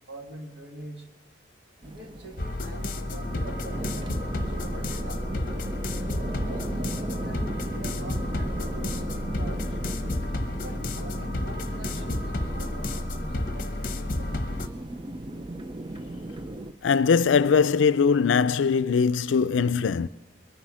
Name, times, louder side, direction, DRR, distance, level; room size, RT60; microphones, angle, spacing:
voice 1, 0.1-1.1 1.8-5.3 6.4-9.8 10.5-14.8, right 1 dB, 70° right, 1.9 m, -44 dB
sound 1, 1.8-16.7, right 2 dB, 25° right, 0.5 m, -36 dB
sound 2, 2.4-14.7, left 2 dB, 45° left, 1.0 m, -31 dB
voice 2, 16.8-20.1, left 5 dB, 85° left, 0.4 m, -21 dB
22.0 x 7.7 x 6.2 m
head